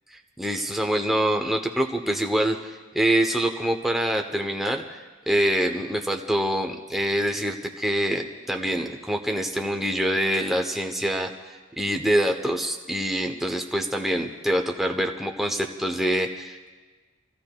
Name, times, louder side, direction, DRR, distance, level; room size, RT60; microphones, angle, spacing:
voice 1, 0.4-5.0 5.3-16.7, right 1 dB, ahead, 3 dB, 0.7 m, -25 dB
29.0 x 15.5 x 2.2 m, 1.3 s
head